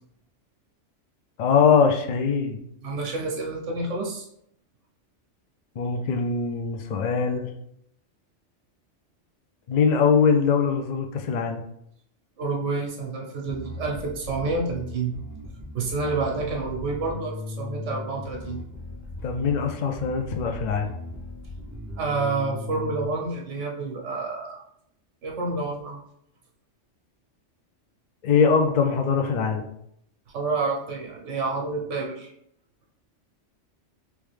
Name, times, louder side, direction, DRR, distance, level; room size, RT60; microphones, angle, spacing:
voice 1, 1.4-2.6 5.8-7.5 9.7-11.6 19.2-20.9 28.2-29.7, left 6 dB, 60° left, 4 dB, 0.4 m, -22 dB
voice 2, 2.8-4.3 12.4-15.1 15.7-18.6 22.0-24.6 25.2-26.0 30.3-32.3, right 3 dB, 75° right, -1 dB, 1.2 m, -29 dB
Bass guitar, 13.5-23.1, left 2 dB, 20° right, 0.5 m, -38 dB
3.4 x 3.1 x 3.3 m, 0.72 s
omnidirectional pair, 1.3 m